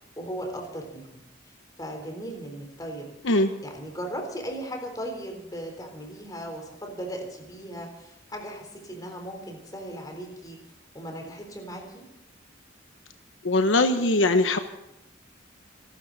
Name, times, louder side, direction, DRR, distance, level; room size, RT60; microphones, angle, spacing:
voice 1, 0.2-1.2 1.8-3.2 3.6-10.6 10.9-12.1, right 1 dB, 20° left, 3 dB, 3.9 m, -37 dB
voice 2, 13.4-14.6, left 2 dB, 75° left, 7 dB, 1.1 m, -21 dB
27.5 x 12.5 x 4.2 m, 0.87 s
head